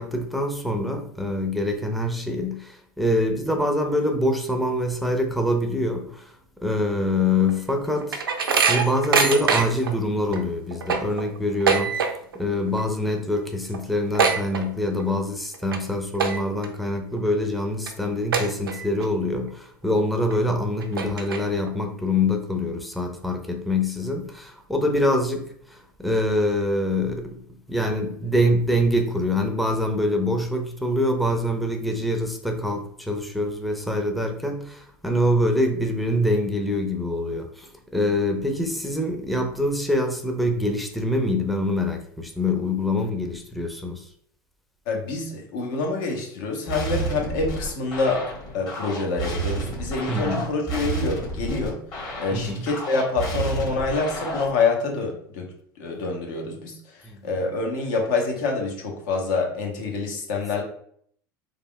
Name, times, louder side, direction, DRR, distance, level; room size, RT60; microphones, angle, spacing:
voice 1, 0.0-6.3 6.6-12.1 12.3-27.4 27.7-44.1 50.1-50.5 52.3-52.7 57.0-57.3, left 1 dB, ahead, 3 dB, 0.5 m, -25 dB
sound 1, 7.5-9.9 10.3-10.4 10.7-12.4 12.7-13.1 13.3-13.4 13.7-15.1 15.5-15.8 16.1-16.7 17.2-17.3 17.9-18.0 18.3-19.1 19.5-19.6 20.3-20.4 20.8-21.7, right 5 dB, 90° right, 0.4 m, -23 dB
voice 2, 44.9-48.2 48.5-51.8 52.2-55.5 55.8-56.7 57.2-60.6, left 3 dB, 65° left, 1 dB, 0.9 m, -26 dB
sound 2, 46.7-54.6, right 2 dB, 35° left, 1.4 m, -30 dB
3.3 x 2.4 x 2.2 m, 0.63 s
hypercardioid pair, 85°, 11 cm